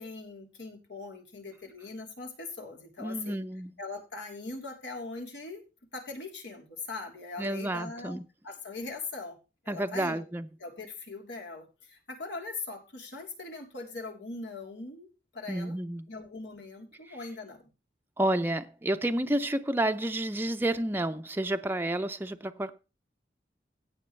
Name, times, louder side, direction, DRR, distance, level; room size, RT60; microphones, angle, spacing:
voice 1, 0.0-3.4 3.8-5.6 5.9-9.4 9.6-10.2 10.6-15.8 16.1-17.7, left 3 dB, 90° left, 3.4 m, -41 dB
voice 2, 3.0-3.7 7.4-8.2 9.7-10.5 15.5-16.1 17.0-17.2 18.2-22.8, right 1 dB, 10° right, 0.5 m, -30 dB
16.0 x 7.1 x 3.2 m
head